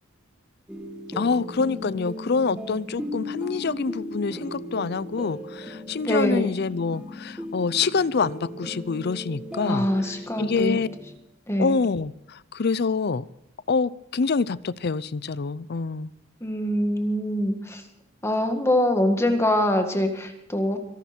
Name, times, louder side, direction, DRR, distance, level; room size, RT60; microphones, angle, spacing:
sound 1, 0.7-11.2, left 1 dB, 5° right, 1.7 m, -37 dB
voice 1, 1.2-9.9 10.4-10.9 11.6-13.2 13.7-16.1, left 4 dB, 50° left, 19 dB, 0.5 m, -26 dB
voice 2, 6.0-6.5 9.6-10.8 11.5-11.8 16.4-17.8 18.2-20.8, left 1 dB, 15° left, 5 dB, 1.8 m, -24 dB
24.0 x 12.0 x 4.4 m, 0.81 s
head